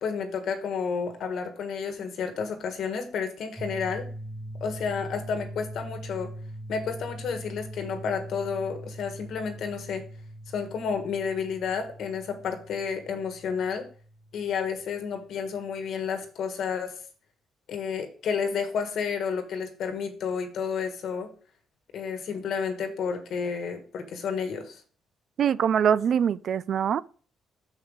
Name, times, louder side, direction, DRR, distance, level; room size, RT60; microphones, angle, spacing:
voice 1, 0.0-4.1 4.6-6.3 6.7-10.0 10.5-13.9 14.3-17.0 17.7-21.3 21.9-24.8, left 6 dB, 70° left, 1.5 m, -31 dB
sound 1, 3.6-15.4, right 1 dB, 10° left, 1.1 m, -42 dB
voice 2, 25.4-27.0, right 8 dB, 60° right, 0.3 m, -23 dB
6.4 x 5.7 x 4.9 m
cardioid pair, 90°, 0 cm